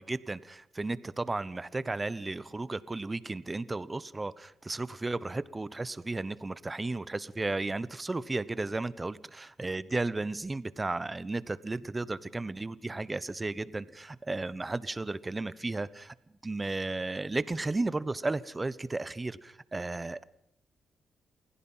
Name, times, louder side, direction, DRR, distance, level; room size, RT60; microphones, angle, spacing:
voice 1, 0.0-16.1 16.4-20.2, right 2 dB, 20° right, 17 dB, 1.0 m, -34 dB
28.5 x 16.0 x 5.7 m, 0.74 s
cardioid pair, 90°, 0 cm